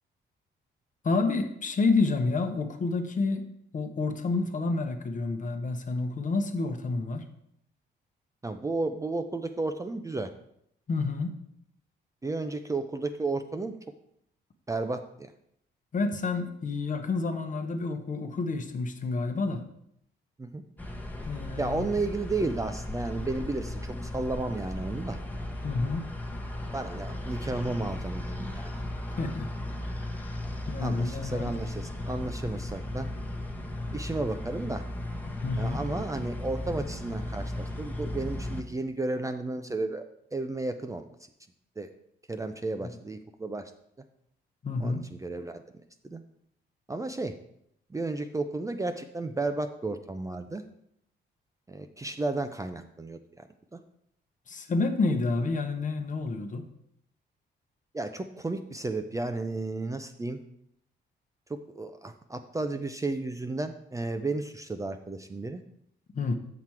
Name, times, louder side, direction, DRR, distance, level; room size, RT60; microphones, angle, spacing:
voice 1, 1.0-3.5 3.7-7.3 10.9-11.3 15.9-19.6 21.2-21.9 25.6-26.1 29.1-29.5 30.6-31.5 35.4-35.8 44.6-45.1 54.5-56.6 66.1-66.4, left 3 dB, 40° left, 7 dB, 1.0 m, -29 dB
voice 2, 8.4-10.3 12.2-13.7 14.7-15.3 20.4-20.6 21.6-25.2 26.7-28.7 29.2-29.3 30.8-33.1 33.9-34.8 35.6-40.1 40.3-41.1 41.8-41.9 42.3-43.7 44.8-45.6 46.0-46.2 46.9-47.4 47.9-50.6 51.7-53.5 53.7-53.8 57.9-60.4 61.7-65.6, right 2 dB, 15° right, 7 dB, 0.5 m, -33 dB
sound 1, 20.8-38.6, left 1 dB, 10° left, 1.0 m, -36 dB
7.2 x 5.9 x 4.6 m, 0.74 s
cardioid pair, 90°, 20 cm